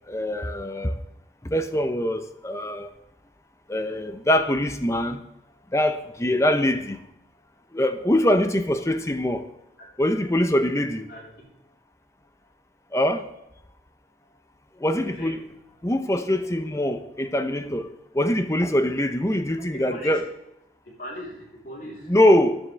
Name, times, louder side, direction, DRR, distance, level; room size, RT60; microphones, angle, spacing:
voice 1, 0.1-0.9 1.4-2.9 3.7-5.2 5.7-7.0 7.7-9.4 10.0-11.1 12.9-13.3 14.8-15.5 15.8-17.9 18.1-20.3 22.1-22.6, left 1 dB, 15° left, 8 dB, 0.7 m, -23 dB
voice 2, 9.8-10.1 11.1-11.5 15.0-15.3 19.6-20.2 21.0-22.1, equal, 50° left, -3 dB, 3.7 m, -39 dB
14.0 x 10.0 x 3.4 m, 0.84 s
head